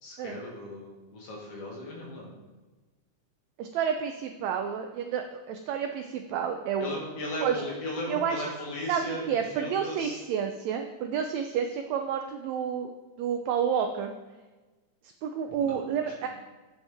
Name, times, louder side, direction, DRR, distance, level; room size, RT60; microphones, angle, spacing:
voice 1, 0.0-2.3 6.8-10.2 15.6-15.8 16.2-16.3, left 1 dB, 50° left, -2 dB, 2.4 m, -37 dB
voice 2, 3.6-6.9 7.4-7.6 8.1-8.4 8.9-12.9 13.2-14.1 15.2-16.3, right 7 dB, 90° right, 5 dB, 1.5 m, -30 dB
8.6 x 7.9 x 3.5 m, 1.3 s
omnidirectional pair, 3.7 m